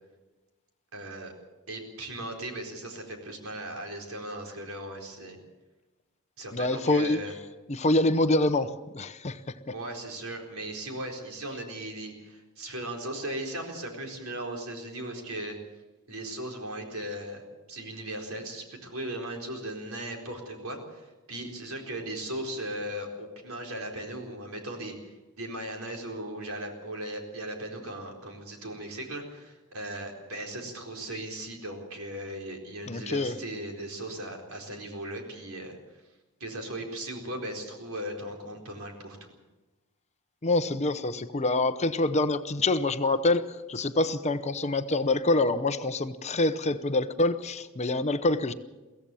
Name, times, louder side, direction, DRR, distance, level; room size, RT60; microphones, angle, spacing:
voice 1, 0.9-1.3 1.7-5.4 6.4-7.3 9.7-15.5 16.1-36.0 36.4-39.3, right 1 dB, 70° right, 2 dB, 4.3 m, -38 dB
voice 2, 6.5-7.2 7.7-9.4 32.9-33.4 40.4-48.5, left 2 dB, 30° left, 11 dB, 0.8 m, -26 dB
23.5 x 16.0 x 7.0 m, 1.2 s
head